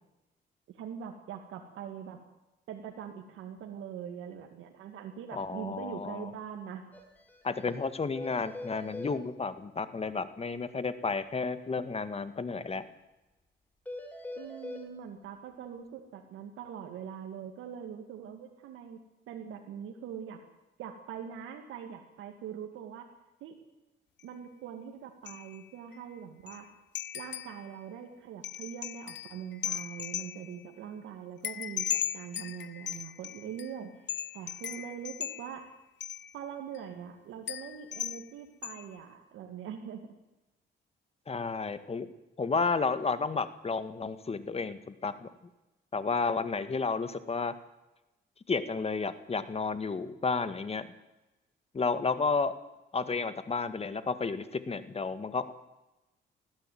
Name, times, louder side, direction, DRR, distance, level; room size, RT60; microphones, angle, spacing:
voice 1, 0.7-2.2 2.7-6.8 14.4-20.4 20.8-23.1 23.4-23.6 24.2-26.7 27.1-35.7 36.3-40.1, right 8 dB, 85° right, 3 dB, 2.2 m, -43 dB
voice 2, 5.3-6.3 7.4-12.9 41.3-42.1 42.4-45.3 45.9-47.5 48.5-50.9 51.7-52.6 52.9-55.5, left 4 dB, 30° left, 12 dB, 1.8 m, -32 dB
sound 1, 6.9-7.0 7.3-7.4 7.7-7.8 8.2-9.1 13.9-14.8, left 2 dB, 10° left, 4.3 m, -42 dB
sound 2, 24.2-24.3 25.3-25.7 25.9-26.0 26.5-26.6 27.0-27.7 28.4-30.6 31.4-33.8 34.1-35.7 36.0-36.3 36.7-36.8 37.5-38.3 38.6-39.0, left 10 dB, 65° left, 1.1 m, -37 dB
20.0 x 14.5 x 9.5 m, 0.99 s
cardioid pair, 90°, 20 cm